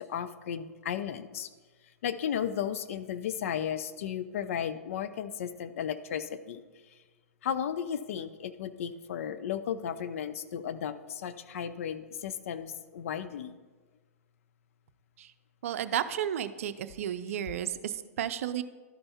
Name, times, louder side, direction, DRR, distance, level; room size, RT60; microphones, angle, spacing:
voice 1, 0.0-1.5 2.0-6.6 7.4-13.5, left 8 dB, 60° left, 12 dB, 0.5 m, -34 dB
voice 2, 15.6-18.6, right 10 dB, 60° right, 12 dB, 0.5 m, -32 dB
12.0 x 5.5 x 4.1 m, 1.3 s
figure-of-eight pair, 105°, 8 cm